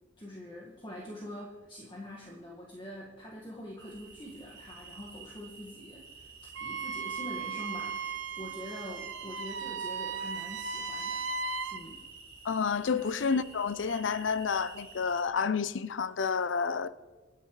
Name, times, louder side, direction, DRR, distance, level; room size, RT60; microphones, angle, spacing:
voice 1, 0.2-6.3 6.6-11.3 11.7-12.0 13.0-13.1, left 1 dB, 25° left, 1.7 m, -44 dB
sound 1, 3.8-15.2, right 4 dB, 20° right, 2.0 m, -51 dB
Wind instrument woodwind instrument, 6.6-11.8, right 5 dB, 65° right, 0.8 m, -36 dB
voice 2, 12.4-16.9, left 5 dB, 65° left, 0.5 m, -30 dB
27.0 x 10.0 x 3.2 m
head